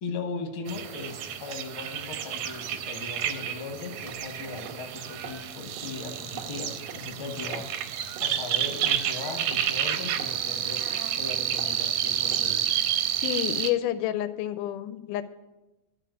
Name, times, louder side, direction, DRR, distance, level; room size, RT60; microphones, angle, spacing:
voice 1, 0.0-7.7 8.2-12.6, left 3 dB, 50° left, 3 dB, 1.8 m, -38 dB
sound 1, 0.7-13.7, right 10 dB, 85° right, 2.2 m, -30 dB
sound 2, 4.1-4.3 4.7-4.9 5.2-5.4 5.8-5.9 6.4-6.6 6.9-7.1 7.5-7.8 8.2-8.3 8.8-9.0 9.5-9.7 10.2-10.4 10.9-11.1 11.6-11.7 12.3-12.6, right 7 dB, 65° right, 1.9 m, -43 dB
voice 2, 13.2-15.2, left 12 dB, 90° left, 13 dB, 2.1 m, -29 dB
12.0 x 4.4 x 8.0 m, 1.0 s
omnidirectional pair, 3.6 m